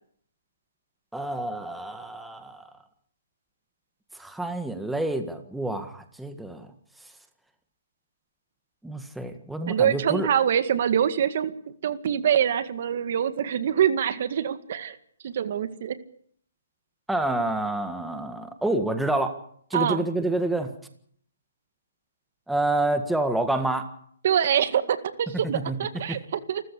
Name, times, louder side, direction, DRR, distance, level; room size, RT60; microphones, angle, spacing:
voice 1, 1.1-2.7 4.1-6.7 8.8-10.3 17.1-19.3 19.7-20.7 22.5-23.9 25.5-25.8 26.1-26.2, right 2 dB, ahead, 7 dB, 1.7 m, -28 dB
voice 2, 9.7-11.5 11.8-15.0 15.2-16.0 19.7-20.0 24.2-26.6, right 9 dB, 50° right, 12 dB, 1.9 m, -24 dB
28.5 x 14.5 x 8.5 m, 0.63 s
hypercardioid pair, 160°, 0 cm